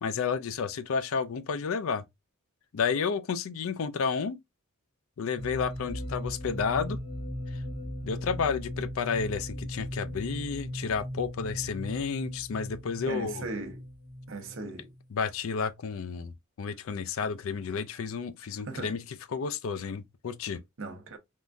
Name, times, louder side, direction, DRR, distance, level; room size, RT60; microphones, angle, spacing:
voice 1, 0.0-2.1 2.7-4.4 5.2-7.0 7.5-7.6 8.0-13.5 15.1-16.3 16.6-19.0 19.3-20.6, left 5 dB, 70° left, 0.4 m, -31 dB
sound 1, 5.4-15.0, equal, 20° left, 0.5 m, -38 dB
voice 2, 13.1-13.8 14.3-14.9 18.7-18.9 20.8-21.2, right 3 dB, 60° right, 0.7 m, -37 dB
3.6 x 2.2 x 2.5 m
head